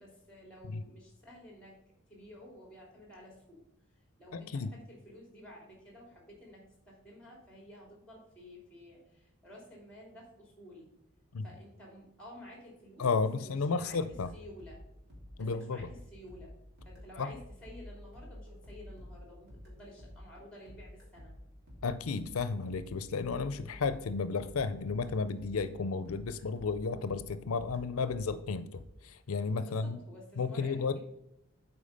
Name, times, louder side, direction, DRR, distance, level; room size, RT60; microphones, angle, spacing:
voice 1, 0.0-1.8 2.1-3.6 3.9-10.9 11.4-13.1 13.4-14.0 14.3-14.8 15.3-16.5 16.9-21.3 29.6-31.0, left 1 dB, 5° left, -1 dB, 2.7 m, -52 dB
voice 2, 4.3-4.7 11.3-11.4 13.0-14.3 15.4-15.9 17.2-17.3 21.8-30.0 30.4-31.0, left 4 dB, 90° left, 13 dB, 0.5 m, -33 dB
sound 1, 14.1-25.8 26.1-28.9, left 1 dB, 50° right, 2.8 m, -51 dB
8.5 x 4.6 x 5.1 m, 0.83 s
head